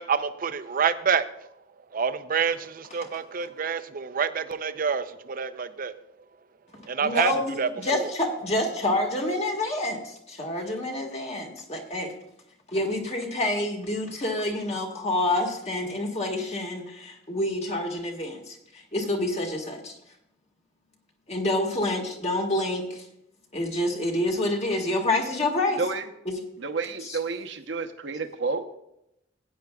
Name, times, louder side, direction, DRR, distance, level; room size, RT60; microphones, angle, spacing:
voice 1, 0.0-1.5 1.9-5.9 6.9-8.1, right 6 dB, 45° right, 12 dB, 0.5 m, -27 dB
voice 2, 7.0-12.1 12.7-19.9 21.3-23.0 23.5-25.8 26.2-26.3 27.0-27.2, left 1 dB, 35° left, 2 dB, 1.7 m, -28 dB
voice 3, 25.8-26.1 26.6-28.6, right 4 dB, 70° right, 5 dB, 0.9 m, -30 dB
16.5 x 9.4 x 2.3 m, 0.81 s
head